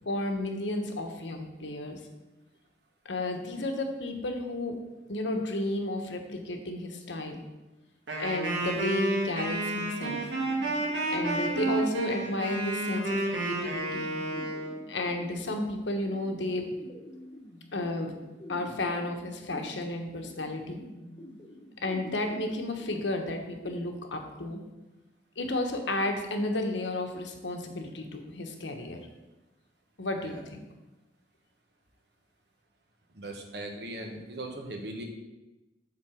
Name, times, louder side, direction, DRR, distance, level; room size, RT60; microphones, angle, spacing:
voice 1, 0.0-2.0 3.1-4.7 5.1-7.4 8.2-10.2 11.1-14.1 14.9-16.7 17.7-18.1 18.5-20.8 21.8-24.6 25.4-29.1 30.0-30.4, left 2 dB, 90° left, 4 dB, 1.0 m, -32 dB
Wind instrument woodwind instrument, 8.1-14.7, right 2 dB, 90° right, 1.8 m, -30 dB
sound 1, 10.0-23.8, left 1 dB, 30° left, 0.8 m, -48 dB
voice 2, 33.1-35.1, right 1 dB, 65° right, 3 dB, 1.1 m, -39 dB
7.7 x 3.9 x 6.2 m, 1.1 s
head